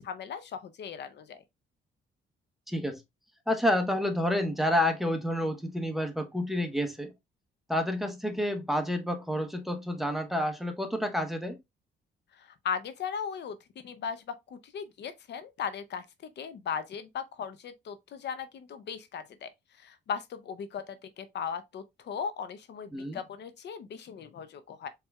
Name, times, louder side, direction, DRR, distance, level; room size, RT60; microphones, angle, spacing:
voice 1, 0.0-1.4 12.4-16.1 16.4-19.5 19.8-24.9, left 7 dB, 60° left, 0.6 m, -38 dB
voice 2, 2.7-3.0 3.5-7.1 7.7-11.6 22.9-23.2, left 1 dB, ahead, 0.9 m, -29 dB
4.4 x 3.4 x 2.3 m
cardioid pair, 90°, 20 cm